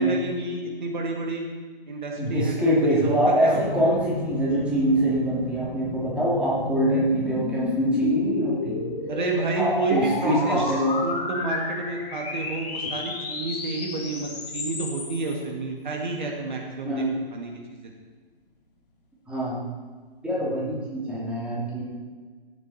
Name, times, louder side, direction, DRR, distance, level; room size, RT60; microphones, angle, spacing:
voice 1, 0.0-1.4 1.9-3.7 9.1-10.7 11.0-17.1 17.3-17.5 17.8-17.9, right 3 dB, 55° right, 1 dB, 2.0 m, -30 dB
voice 2, 2.2-8.8 9.5-11.0 16.8-17.1 19.3-19.6 20.2-21.8, right 1 dB, 5° right, -8 dB, 2.7 m, -24 dB
sound 1, 3.5-15.6 16.6-16.7, equal, 15° left, 2.3 m, -38 dB
sound 2, 5.6-15.4, left 4 dB, 45° left, 2.2 m, -31 dB
16.0 x 8.1 x 4.2 m, 1.5 s
figure-of-eight pair, 135°, 29 cm